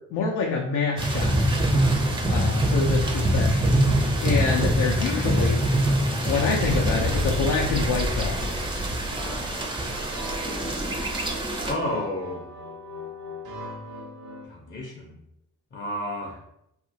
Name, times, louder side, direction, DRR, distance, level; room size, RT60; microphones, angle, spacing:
voice 1, 0.1-1.3 2.3-3.8 4.2-5.6 6.2-8.5, left 4 dB, 85° left, 0 dB, 0.5 m, -26 dB
sound 1, 1.0-11.7, right 1 dB, 15° right, 0.5 m, -24 dB
sound 2, 9.1-14.5, equal, 70° right, 0.9 m, -39 dB
voice 2, 11.6-12.5 14.5-15.2 15.7-16.4, left 1 dB, 40° left, -2 dB, 0.6 m, -31 dB
2.8 x 2.4 x 2.7 m, 0.77 s
cardioid pair, 90°, 30 cm